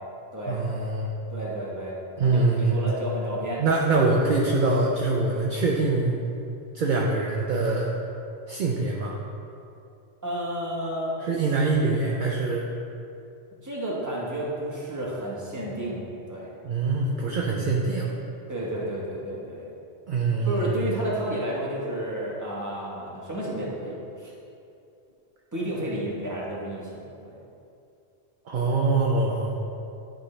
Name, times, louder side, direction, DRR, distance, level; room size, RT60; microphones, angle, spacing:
voice 1, 0.5-1.1 2.2-2.8 3.6-6.2 6.7-7.9 8.5-9.1 11.2-12.7 16.6-18.1 20.1-20.8 28.5-29.5, right 3 dB, 55° right, -2 dB, 0.7 m, -24 dB
voice 2, 1.3-3.6 10.2-11.2 13.6-16.6 17.2-17.3 18.5-19.7 20.4-24.3 25.5-27.4, right 1 dB, 20° right, -5 dB, 1.1 m, -31 dB
10.0 x 3.8 x 3.2 m, 2.7 s
omnidirectional pair, 1.1 m